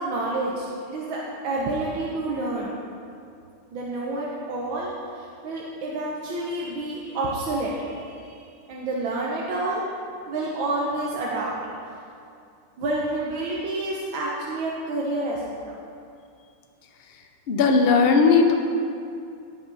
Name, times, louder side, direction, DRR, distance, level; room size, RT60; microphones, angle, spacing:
voice 1, 0.0-2.8 3.7-8.4 8.7-9.8 10.3-11.5 12.8-15.8, right 2 dB, 85° right, -4 dB, 1.8 m, -29 dB
voice 2, 17.5-18.6, left 4 dB, 50° left, 4 dB, 0.7 m, -17 dB
17.5 x 6.0 x 4.1 m, 2.5 s
omnidirectional pair, 2.1 m